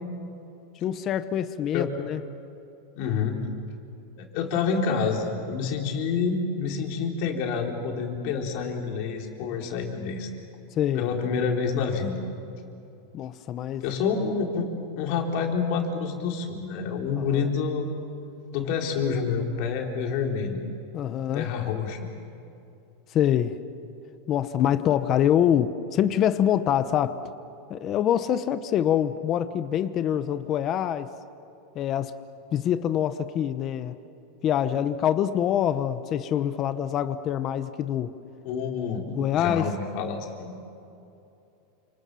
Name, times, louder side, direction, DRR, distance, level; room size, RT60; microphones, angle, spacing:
voice 1, 0.8-2.2 10.8-11.1 13.1-13.8 17.3-17.5 20.9-21.4 23.1-23.5 24.3-27.2 27.7-31.1 31.7-32.1 32.5-33.9 34.4-38.1 39.1-39.7, left 10 dB, 30° left, 11 dB, 0.9 m, -25 dB
voice 2, 3.0-3.4 4.2-10.3 11.0-12.2 13.8-14.7 14.9-18.0 18.5-20.6 21.3-22.1 38.4-40.5, left 5 dB, 50° left, 1 dB, 4.1 m, -28 dB
29.5 x 27.5 x 7.0 m, 2.8 s
supercardioid pair, 155°, 0 cm